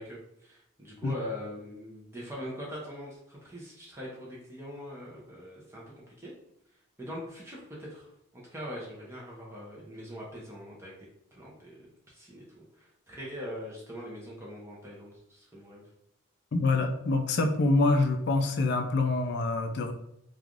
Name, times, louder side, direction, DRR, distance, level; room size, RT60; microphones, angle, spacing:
voice 1, 0.0-6.3 7.0-10.9 11.3-11.8 12.1-15.8, equal, 10° right, -5 dB, 0.5 m, -42 dB
voice 2, 16.5-19.9, left 2 dB, 50° left, 4 dB, 0.3 m, -26 dB
3.1 x 2.3 x 2.4 m, 0.77 s
head